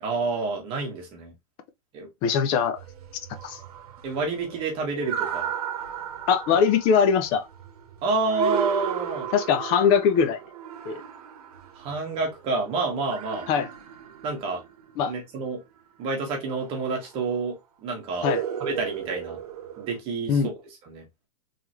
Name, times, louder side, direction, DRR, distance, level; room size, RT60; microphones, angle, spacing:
voice 1, 0.0-1.3 1.9-2.1 4.0-5.5 8.0-9.3 11.8-13.5 14.2-14.6 15.0-15.6 16.0-18.3 18.6-19.4 19.8-20.4 20.9-21.0, right 3 dB, 30° right, 1.4 m, -28 dB
voice 2, 2.2-2.8 3.4-3.6 6.3-7.4 9.3-10.4 10.9-11.0 13.5-13.7 15.0-15.1 18.2-18.4 20.3-20.5, left 7 dB, 25° left, 0.4 m, -21 dB
sound 1, 2.8-12.5 12.9-14.9 16.4-17.1 18.1-20.0, right 10 dB, 70° right, 1.0 m, -35 dB
3.6 x 3.4 x 3.0 m
supercardioid pair, 160°, 19 cm